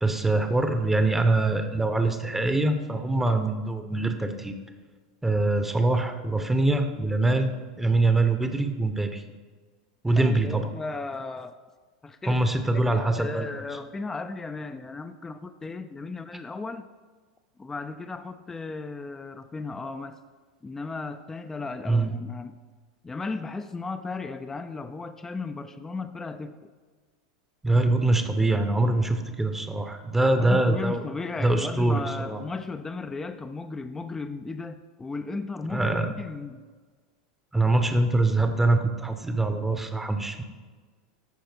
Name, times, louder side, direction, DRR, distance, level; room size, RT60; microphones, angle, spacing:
voice 1, 0.0-4.5 5.2-9.2 10.0-10.7 12.3-13.5 21.9-22.2 27.6-31.0 31.4-32.4 35.7-36.1 37.5-40.4, right 2 dB, 10° right, 7 dB, 0.8 m, -24 dB
voice 2, 10.2-11.6 12.0-12.5 12.7-16.9 17.6-20.2 20.6-22.6 23.0-26.7 30.4-36.6, left 3 dB, 15° left, 9 dB, 0.4 m, -35 dB
14.0 x 5.0 x 4.4 m, 1.4 s
hypercardioid pair, 90°, 3 cm